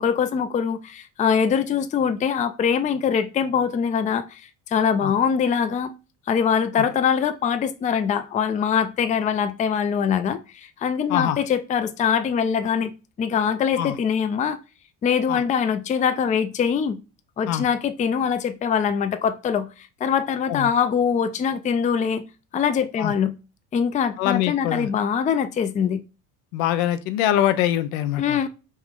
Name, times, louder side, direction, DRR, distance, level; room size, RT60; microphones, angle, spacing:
voice 1, 0.0-4.4 4.7-5.9 6.3-12.9 13.2-14.6 15.0-17.0 17.4-22.2 22.5-23.3 23.7-26.0 28.2-28.5, left 7 dB, 20° left, 0.3 m, -23 dB
voice 2, 24.2-24.9 26.5-28.4, left 11 dB, 85° left, 0.5 m, -23 dB
3.1 x 2.4 x 3.6 m
supercardioid pair, 85°, 41 cm